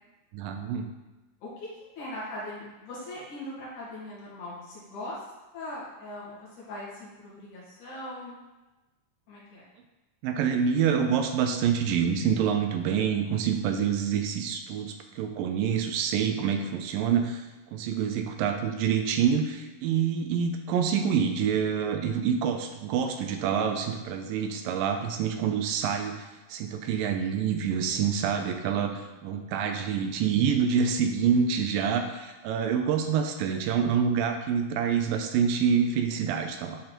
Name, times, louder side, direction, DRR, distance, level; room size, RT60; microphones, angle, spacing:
voice 1, 0.3-0.9 10.2-17.5 17.7-36.8, right 7 dB, 80° right, 5 dB, 2.4 m, -27 dB
voice 2, 2.0-5.3 5.5-8.4 9.3-9.6, left 1 dB, 65° left, -7 dB, 3.6 m, -40 dB
10.0 x 3.9 x 4.5 m, 1.1 s
omnidirectional pair, 4.0 m